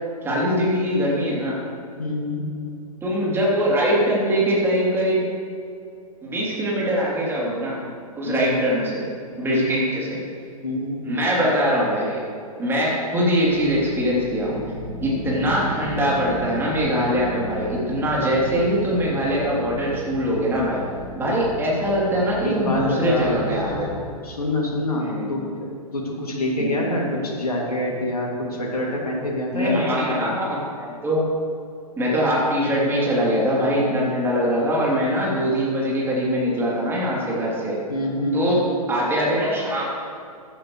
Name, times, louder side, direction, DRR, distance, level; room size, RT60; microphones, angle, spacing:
voice 1, 0.2-1.5 3.0-5.2 6.2-7.8 8.1-9.0 9.4-10.1 11.0-12.2 12.6-14.6 15.0-20.8 21.1-24.0 25.0-25.4 26.6-26.9 29.5-31.2 32.0-37.8 38.3-38.6 38.9-39.9, equal, 10° right, -5 dB, 3.2 m, -22 dB
voice 2, 2.0-2.4 8.2-8.6 9.5-9.8 10.6-11.0 22.4-23.6 24.2-30.3 37.9-38.4, left 1 dB, 75° left, -2 dB, 2.6 m, -26 dB
sound 1, 13.4-23.9, right 1 dB, 35° right, 2.2 m, -35 dB
15.5 x 11.0 x 3.2 m, 2.5 s
figure-of-eight pair, 115°, 20 cm